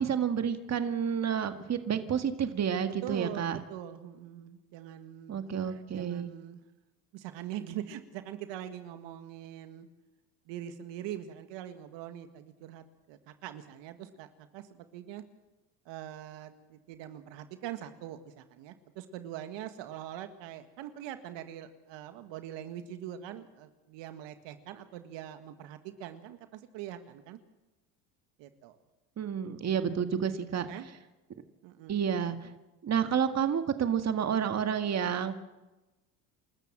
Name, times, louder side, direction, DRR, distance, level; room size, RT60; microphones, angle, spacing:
voice 1, 0.0-3.6 5.3-6.3 29.2-30.7 31.9-32.5 32.8-35.3, right 8 dB, 35° right, 8 dB, 1.9 m, -30 dB
voice 2, 3.0-6.6 7.1-9.9 10.5-15.2 15.9-27.4 28.4-28.8 30.5-30.9 31.6-32.0, right 11 dB, 65° right, 9 dB, 1.8 m, -43 dB
28.5 x 13.5 x 7.7 m, 1.1 s
supercardioid pair, 85°, 47 cm